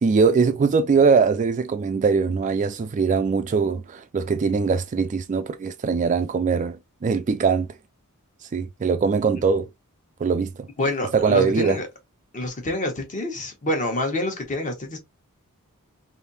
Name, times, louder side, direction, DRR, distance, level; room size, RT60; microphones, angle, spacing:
voice 1, 0.0-7.7 8.5-9.7 10.2-10.7 11.1-11.8, right 5 dB, 35° right, 0.3 m, -21 dB
voice 2, 10.8-11.9 12.3-15.0, left 1 dB, 35° left, 1.2 m, -27 dB
3.5 x 2.7 x 2.6 m
head